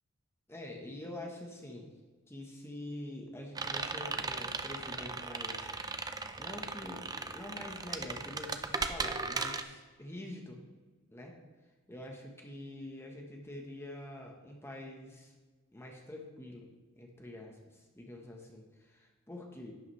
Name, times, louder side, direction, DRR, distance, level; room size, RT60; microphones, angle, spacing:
voice 1, 0.5-1.9 2.3-5.7 6.4-10.6 11.1-11.4 11.9-15.3 15.7-16.7 17.0-17.6 17.9-19.7, left 1 dB, 10° left, 0 dB, 1.2 m, -46 dB
sound 1, 3.5-9.6, right 4 dB, 20° right, 0.5 m, -37 dB
11.5 x 8.3 x 3.3 m, 1.3 s
head